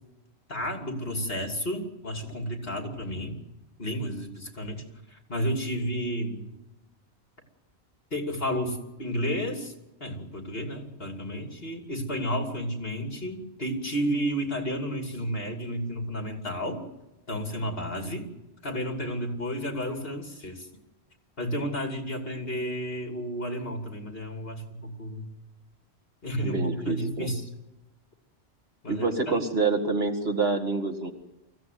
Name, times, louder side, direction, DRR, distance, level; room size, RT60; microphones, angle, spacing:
voice 1, 0.5-3.4 3.8-6.5 8.1-9.7 10.0-16.8 17.3-18.3 18.6-20.7 21.4-25.3 26.2-27.5 28.8-29.4, equal, 60° left, 4 dB, 3.2 m, -32 dB
voice 2, 26.4-27.3 28.9-31.1, right 3 dB, 65° right, 5 dB, 2.4 m, -27 dB
24.0 x 15.5 x 9.4 m, 0.98 s
omnidirectional pair, 1.1 m